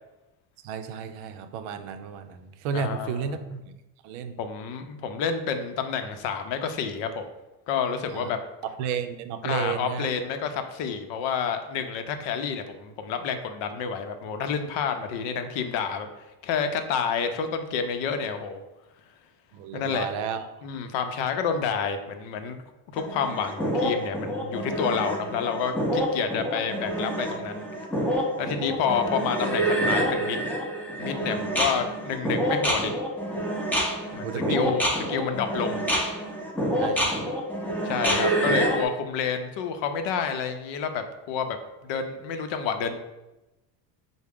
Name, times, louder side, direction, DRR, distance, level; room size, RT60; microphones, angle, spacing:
voice 1, 0.6-3.6 4.0-4.4 8.1-8.3 8.8-10.1 19.5-20.4 28.7-29.0 34.2-34.8 36.8-37.3, right 6 dB, 70° right, 9 dB, 0.6 m, -32 dB
voice 2, 2.7-3.4 4.4-7.2 7.7-8.4 9.4-16.1 16.4-18.6 19.7-20.2 20.6-22.6 22.9-27.6 28.4-30.4 31.0-32.9 34.1-35.8 37.8-41.6 41.8-43.0, left 6 dB, 60° left, 7 dB, 0.6 m, -29 dB
sound 1, 23.0-38.8, right 1 dB, 5° left, 0.6 m, -27 dB
4.6 x 2.1 x 3.5 m, 0.99 s
supercardioid pair, 90°, 50 cm